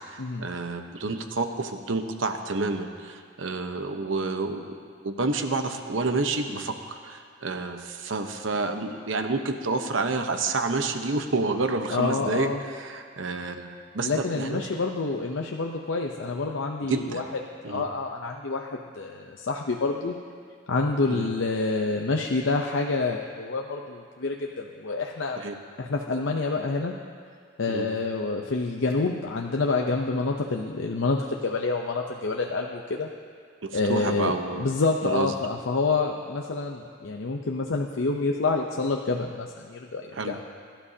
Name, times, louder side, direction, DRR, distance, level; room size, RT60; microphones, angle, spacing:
voice 1, 0.0-14.6 16.9-17.2 17.6-17.8 21.1-21.3 25.4-25.5 27.7-27.9 33.6-34.7 35.0-35.3 40.1-40.4, right 3 dB, 80° right, 6 dB, 0.9 m, -29 dB
voice 2, 11.9-12.6 14.0-17.2 17.7-20.2 20.7-25.4 25.8-27.0 27.6-33.1 33.7-40.4, left 3 dB, 75° left, 1 dB, 0.7 m, -27 dB
22.5 x 12.0 x 2.8 m, 2.1 s
head